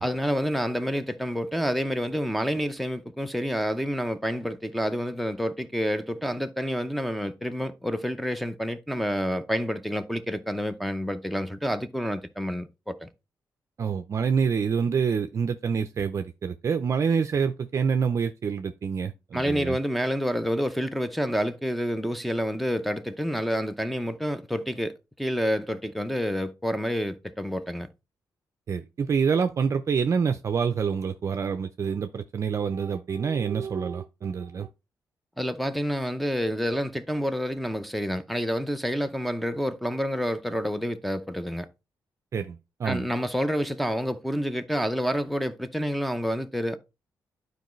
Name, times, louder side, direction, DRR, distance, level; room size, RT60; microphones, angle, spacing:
voice 1, 0.0-13.1 19.3-27.9 35.4-41.7 42.8-46.8, equal, ahead, 0.6 m, -28 dB
voice 2, 13.8-19.8 28.7-34.7 42.3-43.1, right 6 dB, 45° right, 0.5 m, -27 dB
11.5 x 4.7 x 3.1 m
cardioid pair, 125°, 7 cm